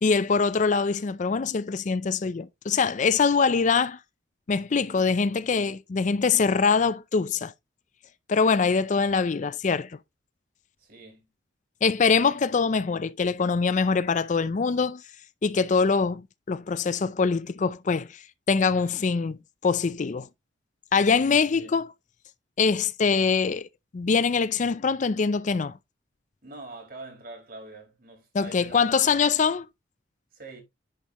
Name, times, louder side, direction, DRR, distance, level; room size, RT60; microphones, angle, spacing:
voice 1, 0.0-4.0 4.5-7.5 8.3-10.0 11.8-15.0 15.4-20.3 20.9-21.9 22.6-23.7 23.9-25.7 28.3-29.7, left 5 dB, 40° left, 0.4 m, -24 dB
voice 2, 10.8-11.3 21.6-21.8 26.4-29.1 30.3-30.6, right 2 dB, 50° right, 4.8 m, -44 dB
10.5 x 5.5 x 3.0 m
head